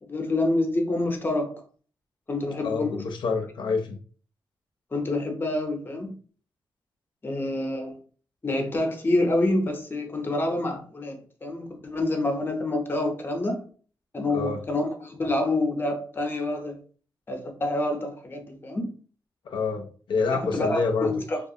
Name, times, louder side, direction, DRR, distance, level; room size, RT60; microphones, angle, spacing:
voice 1, 0.0-1.5 2.3-3.0 4.9-6.1 7.2-8.0 8.4-13.6 14.1-16.8 17.3-18.9 20.3-21.4, left 2 dB, 25° left, 4 dB, 0.6 m, -27 dB
voice 2, 2.6-4.0 14.3-14.6 19.5-21.1, left 4 dB, 80° left, 3 dB, 0.4 m, -27 dB
2.3 x 2.3 x 2.7 m, 0.42 s
wide cardioid pair, 105°, 8 cm